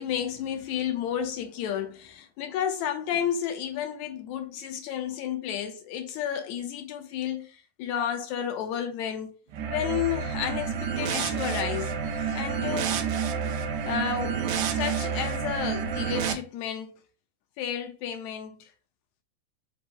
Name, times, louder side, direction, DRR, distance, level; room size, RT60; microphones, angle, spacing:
voice 1, 0.0-9.3 9.6-13.0 13.8-17.0 17.6-18.7, left 9 dB, 80° left, 1.8 m, -32 dB
sound 1, 9.5-16.3, right 6 dB, 75° right, 1.8 m, -29 dB
5.3 x 2.0 x 4.4 m
omnidirectional pair, 3.5 m